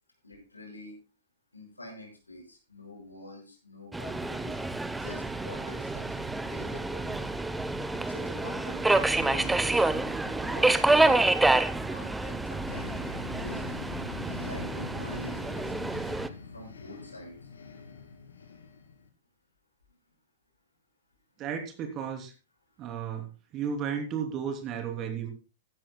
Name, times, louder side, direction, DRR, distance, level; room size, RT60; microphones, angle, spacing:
voice 1, 0.2-1.0 1.5-4.6 4.9-7.4 7.9-11.0 11.8-13.9 14.4-15.9 16.4-17.5, left 1 dB, 90° left, 2 dB, 6.2 m, -46 dB
Subway metro underground, 3.9-16.3, right 2 dB, 5° right, 0.9 m, -28 dB
sound 1, 12.7-19.1, left 5 dB, 75° left, 2.9 m, -43 dB
voice 2, 21.4-22.3 22.8-25.3, right 7 dB, 30° right, 5 dB, 3.3 m, -34 dB
15.5 x 13.0 x 2.3 m, 0.32 s
figure-of-eight pair, 105°, 0 cm